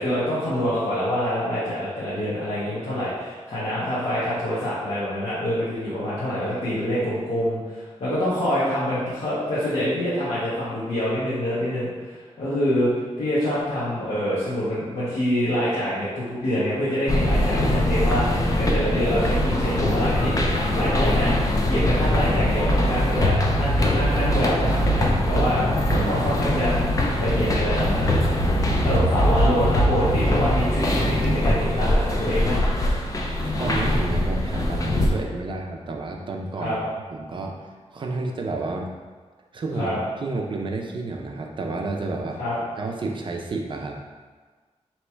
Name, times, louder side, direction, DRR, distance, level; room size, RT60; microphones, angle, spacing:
voice 1, 0.0-12.9 13.2-25.6 25.9-28.5 28.8-32.6 36.6-36.8 39.8-40.0 42.4-42.6, equal, 60° left, -11 dB, 1.2 m, -26 dB
voice 2, 5.9-6.4 25.9-26.1 28.7-29.0 33.4-36.8 37.1-37.5 37.9-38.9 39.5-42.4 42.8-44.0, right 3 dB, 45° right, 2 dB, 0.4 m, -31 dB
sound 1, 17.1-35.1, left 1 dB, 30° left, 0.4 m, -22 dB
3.2 x 3.0 x 4.4 m, 1.4 s
wide cardioid pair, 170°, 11 cm